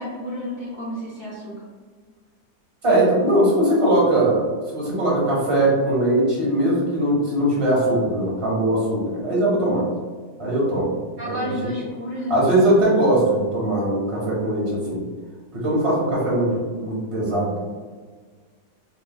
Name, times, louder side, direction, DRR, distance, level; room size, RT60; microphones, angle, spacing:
voice 1, 0.0-1.5 11.2-12.4, left 1 dB, 50° right, -7 dB, 1.3 m, -31 dB
voice 2, 2.8-9.9 10.4-10.9 11.2-11.5 12.3-15.0 15.5-17.6, right 1 dB, 20° right, -7 dB, 1.3 m, -20 dB
6.1 x 2.6 x 2.2 m, 1.5 s
omnidirectional pair, 1.8 m